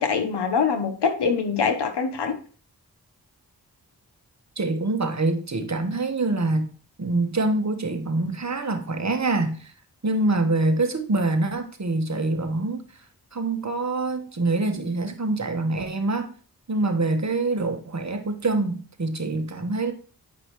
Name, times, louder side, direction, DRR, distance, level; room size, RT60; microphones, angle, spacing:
voice 1, 0.0-2.3, left 5 dB, 90° left, 1.2 m, -24 dB
voice 2, 4.6-6.7 7.0-9.7 10.0-12.8 13.3-16.3 16.7-19.9, right 2 dB, 45° right, 1.4 m, -25 dB
9.5 x 5.3 x 3.2 m
cardioid pair, 45°, 39 cm